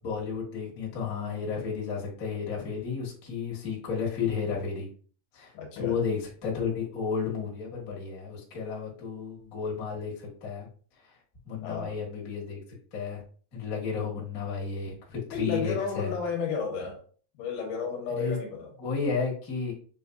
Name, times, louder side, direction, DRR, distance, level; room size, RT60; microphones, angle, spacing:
voice 1, 0.0-4.9 5.3-10.7 11.4-12.6 12.9-13.2 13.5-16.1 18.1-18.4 18.8-19.7, left 5 dB, 55° left, 0.9 m, -32 dB
voice 2, 5.5-6.0 11.6-12.0 15.3-17.0 17.4-18.7, left 6 dB, 75° left, 2.3 m, -32 dB
6.9 x 2.5 x 2.3 m
omnidirectional pair, 4.2 m